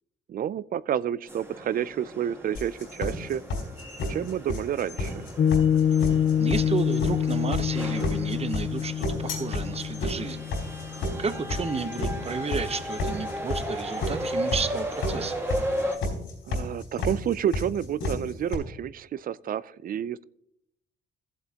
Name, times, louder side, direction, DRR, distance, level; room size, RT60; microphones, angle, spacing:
voice 1, 0.3-3.4 4.1-5.3 16.5-20.2, right 9 dB, 45° right, 19 dB, 0.4 m, -29 dB
sound 1, 1.3-16.0, equal, 10° right, 1.6 m, -36 dB
sound 2, 2.5-18.5, left 2 dB, 80° left, 4.1 m, -31 dB
Piano, 5.4-12.1, left 9 dB, 40° left, 0.4 m, -26 dB
voice 2, 6.4-10.5 11.2-15.4, right 5 dB, 30° right, 11 dB, 0.8 m, -32 dB
15.0 x 7.8 x 2.9 m, 0.76 s
cardioid pair, 90°, 20 cm